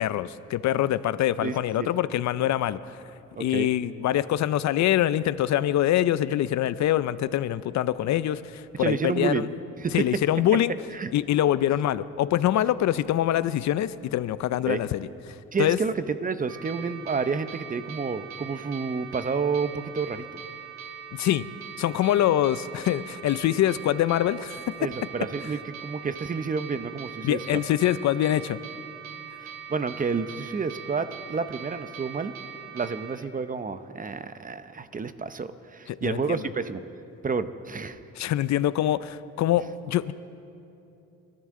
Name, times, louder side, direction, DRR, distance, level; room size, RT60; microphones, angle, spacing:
voice 1, 0.0-3.0 3.4-9.5 9.9-10.7 11.1-15.8 21.1-21.5 21.8-24.9 27.2-28.6 35.9-36.4 38.2-40.1, left 12 dB, 65° left, 16 dB, 0.5 m, -24 dB
voice 2, 1.4-1.9 3.3-3.7 8.8-9.5 9.8-10.0 10.9-11.1 14.7-14.8 15.5-20.4 24.8-27.6 29.4-32.3 32.7-36.8 37.2-38.0, right 5 dB, 30° right, 12 dB, 0.7 m, -30 dB
sound 1, 16.5-33.2, right 9 dB, 60° right, 2.5 m, -42 dB
28.0 x 13.0 x 3.7 m, 2.8 s
cardioid pair, 90°, 30 cm